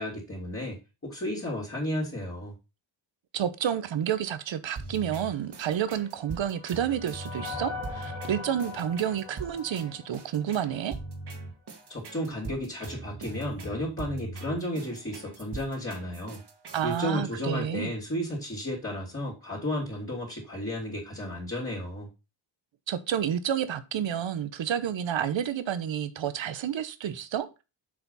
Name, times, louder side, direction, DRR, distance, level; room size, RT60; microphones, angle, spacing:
voice 1, 0.0-2.5 11.9-16.4 16.8-22.1, equal, 30° left, 3.1 m, -33 dB
voice 2, 3.3-10.9 16.7-17.9 22.9-27.6, right 9 dB, 90° right, 1.0 m, -30 dB
sound 1, 4.8-17.0, right 3 dB, 60° right, 2.0 m, -41 dB
sound 2, 5.7-11.1, left 4 dB, 60° left, 2.4 m, -41 dB
7.4 x 5.0 x 5.5 m
wide cardioid pair, 130°, 44 cm